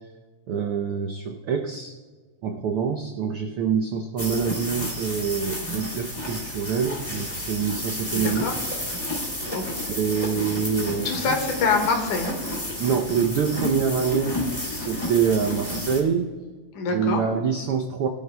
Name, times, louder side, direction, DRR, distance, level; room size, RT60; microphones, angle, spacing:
voice 1, 0.5-1.9 2.4-8.5 9.8-11.3 12.8-16.3 16.9-18.1, right 6 dB, 80° right, 3 dB, 1.2 m, -25 dB
sound 1, 4.2-16.0, left 1 dB, 10° left, 2.4 m, -31 dB
voice 2, 8.1-8.6 9.5-9.6 11.0-12.4 16.7-17.2, left 4 dB, 90° left, 3 dB, 3.1 m, -25 dB
21.5 x 12.5 x 2.2 m, 1.4 s
omnidirectional pair, 3.4 m